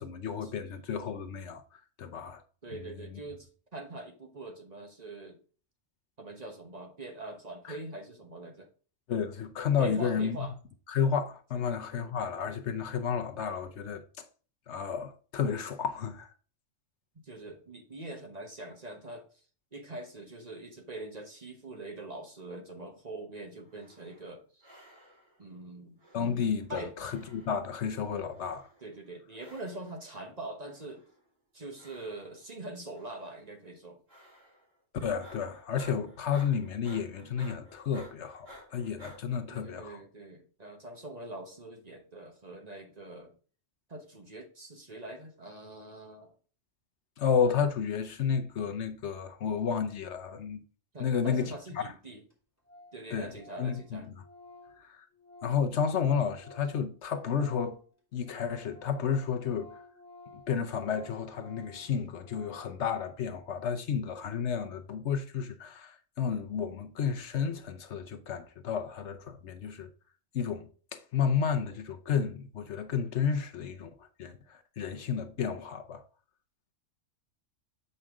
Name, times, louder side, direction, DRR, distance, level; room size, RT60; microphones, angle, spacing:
voice 1, 0.0-2.4 2.8-3.1 7.6-7.8 9.1-10.5 10.9-14.3 14.7-16.3 26.1-28.7 35.0-40.0 47.2-50.6 51.0-51.9 53.1-53.3 53.6-54.1 54.8-55.1 55.4-57.8 58.1-59.8 60.3-69.9 70.3-76.0, left 7 dB, 65° left, 1.0 m, -32 dB
voice 2, 2.6-5.4 6.2-8.7 9.8-10.5 17.2-19.3 19.7-24.7 25.4-26.0 26.7-26.9 28.8-31.0 31.5-34.0 39.5-43.3 43.9-46.3 50.9-52.2 52.9-54.1, right 2 dB, 35° right, 1.1 m, -43 dB
sound 1, 23.6-24.3 24.6-25.4 26.0-26.7 27.0-27.7 28.3-29.0 29.4-30.0 30.6-31.3 31.8-32.5 32.9-33.4 34.1-34.7 35.0-39.2, equal, 80° right, 2.9 m, -54 dB
Organ, 51.7-51.8 52.0-52.1 52.3-52.4 52.7-53.0 53.3-56.9 57.2-62.8, left 2 dB, 10° left, 2.1 m, -53 dB
7.5 x 5.5 x 3.6 m
omnidirectional pair, 1.3 m